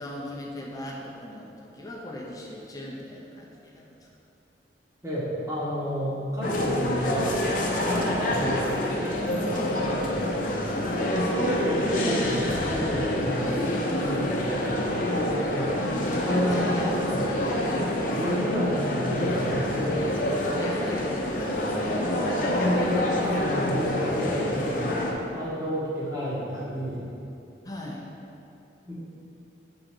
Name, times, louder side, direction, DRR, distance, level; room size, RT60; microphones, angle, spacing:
voice 1, 0.0-4.0 7.9-8.2 15.8-16.9 20.6-21.2 27.6-28.1, left 1 dB, 20° left, -3 dB, 0.8 m, -39 dB
voice 2, 5.0-7.4 7.8-8.7 9.5-10.0 10.8-15.8 16.2-17.3 18.1-20.1 22.0-22.2 22.5-25.0 25.3-27.1 28.9-29.0, equal, 20° right, -9 dB, 1.5 m, -30 dB
sound 1, 6.4-25.1, left 1 dB, 50° left, 0.8 m, -27 dB
7.7 x 3.9 x 6.2 m, 2.7 s
head